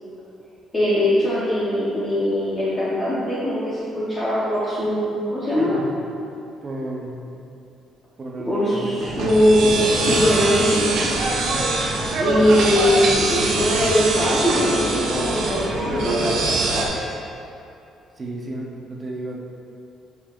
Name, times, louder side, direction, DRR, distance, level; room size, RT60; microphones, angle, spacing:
voice 1, 0.7-5.8 8.4-10.9 12.2-16.4 16.7-17.1, equal, 15° left, -10 dB, 1.1 m, -21 dB
voice 2, 6.6-7.5 8.2-9.2 11.5-11.7 18.2-19.4, right 1 dB, 25° right, -2 dB, 0.9 m, -33 dB
sound 1, 9.0-16.9, right 2 dB, 65° right, 1.0 m, -23 dB
10.0 x 5.4 x 2.6 m, 2.6 s
cardioid pair, 170°, 0 cm